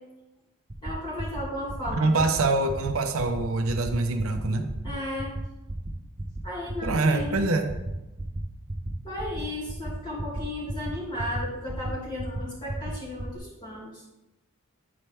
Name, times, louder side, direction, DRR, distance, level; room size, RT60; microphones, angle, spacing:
sound 1, 0.7-0.9 1.2-1.4 1.7-1.9 2.2-2.4 2.7-2.9 3.2-3.4 3.7-3.9 4.2-4.4 4.7-4.9 5.2-5.4 5.7-5.9 6.2-6.4 6.7-6.9 7.2-7.4 7.7-7.9 8.2-8.4 8.7-8.9 9.2-9.4 9.7-9.9 10.2-10.4 10.7-10.9 11.2-11.4 11.7-11.9 12.2-12.4 12.7-12.9 13.2-13.4, right 1 dB, 20° right, 0.5 m, -33 dB
voice 1, 0.8-2.2 4.8-5.3 6.4-7.4 9.0-14.1, left 1 dB, 20° left, -7 dB, 2.3 m, -35 dB
voice 2, 2.0-4.7 6.8-7.7, right 2 dB, 65° right, 5 dB, 0.6 m, -25 dB
8.7 x 4.3 x 3.4 m, 0.97 s
head